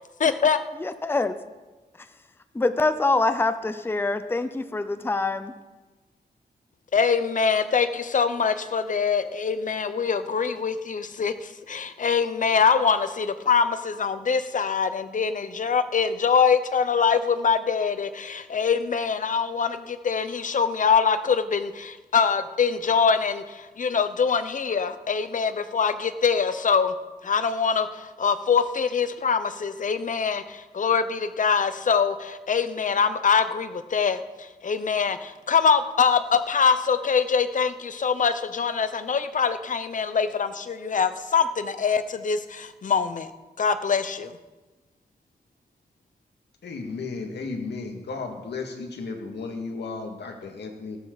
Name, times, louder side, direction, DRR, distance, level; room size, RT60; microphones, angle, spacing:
voice 1, 0.2-0.6 6.9-26.9 27.2-34.2 34.6-43.3 43.6-44.3, left 6 dB, 50° left, 11 dB, 0.7 m, -24 dB
voice 2, 0.8-1.3 2.5-5.5, left 3 dB, 15° left, 11 dB, 0.6 m, -25 dB
voice 3, 46.6-51.0, left 4 dB, 85° left, 3 dB, 2.2 m, -34 dB
18.5 x 12.0 x 4.1 m, 1.2 s
wide cardioid pair, 170°, 17 cm